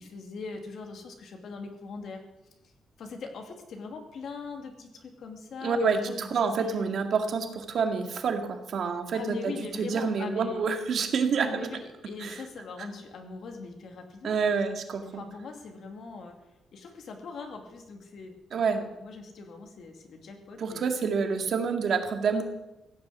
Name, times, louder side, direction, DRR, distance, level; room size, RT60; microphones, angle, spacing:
voice 1, 0.0-2.2 3.0-6.9 9.1-10.7 11.4-14.3 15.1-16.4 16.7-20.9, left 4 dB, 55° left, 4 dB, 2.4 m, -41 dB
voice 2, 5.6-9.5 9.8-11.7 12.2-12.4 14.2-15.2 18.5-18.8 20.6-22.4, right 5 dB, 50° right, 5 dB, 2.0 m, -28 dB
16.5 x 9.5 x 8.4 m, 0.96 s
wide cardioid pair, 175°, 0 cm